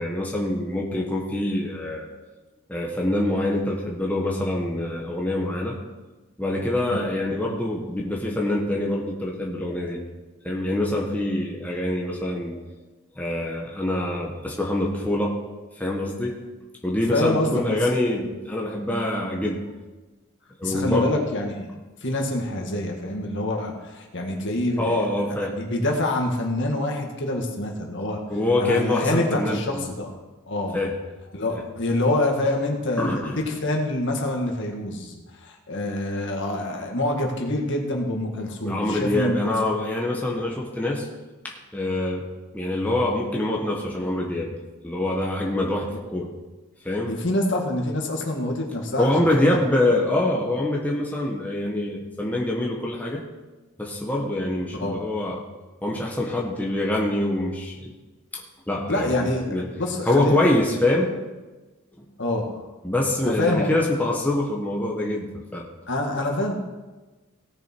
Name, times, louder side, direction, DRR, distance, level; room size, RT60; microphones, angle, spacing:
voice 1, 0.0-2.1 2.7-5.8 6.4-10.0 10.4-12.6 13.2-15.5 15.7-16.4 16.8-19.7 20.6-21.1 24.8-25.6 28.3-29.8 30.7-30.9 33.0-33.3 38.6-41.1 41.4-42.3 42.5-44.5 44.8-46.3 46.8-47.2 49.0-53.2 53.8-55.4 55.8-57.9 58.3-59.7 60.1-61.1 62.0-62.1 62.8-65.7, left 1 dB, 5° left, -2 dB, 1.2 m, -25 dB
voice 2, 17.1-17.6 20.6-21.7 22.0-28.2 28.6-30.2 30.5-30.8 31.3-39.4 47.1-49.1 49.5-49.6 54.8-55.0 58.9-60.4 62.2-62.5 63.3-63.7 65.9-66.5, left 1 dB, 55° left, 1 dB, 1.8 m, -26 dB
17.5 x 6.6 x 4.5 m, 1.2 s
head